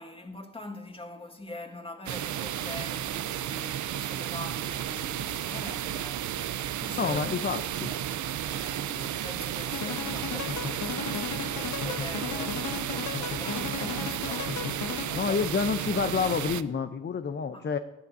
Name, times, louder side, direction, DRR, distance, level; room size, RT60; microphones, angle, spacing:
voice 1, 0.0-6.3 6.8-7.5 8.2-15.7 17.5-17.7, left 2 dB, 15° left, 1.8 m, -44 dB
sound 1, 2.1-16.6, right 11 dB, 60° right, 0.7 m, -33 dB
voice 2, 6.9-7.9 15.1-17.8, left 6 dB, 30° left, 0.7 m, -28 dB
sound 2, 9.7-15.4, left 7 dB, 55° left, 1.1 m, -35 dB
19.5 x 11.5 x 2.7 m
supercardioid pair, 70°, 34 cm